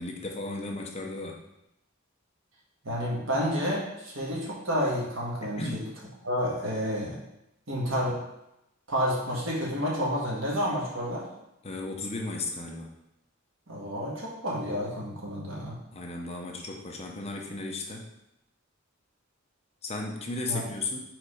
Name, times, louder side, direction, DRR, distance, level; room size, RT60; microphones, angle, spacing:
voice 1, 0.0-1.4 5.4-5.9 11.6-12.9 15.9-18.1 19.8-21.0, left 2 dB, 30° left, 1 dB, 0.7 m, -35 dB
voice 2, 2.8-5.8 6.2-7.2 7.7-8.2 8.9-11.2 13.7-15.8 20.5-20.6, equal, 65° right, -4 dB, 1.7 m, -30 dB
4.8 x 4.1 x 4.9 m, 0.86 s
head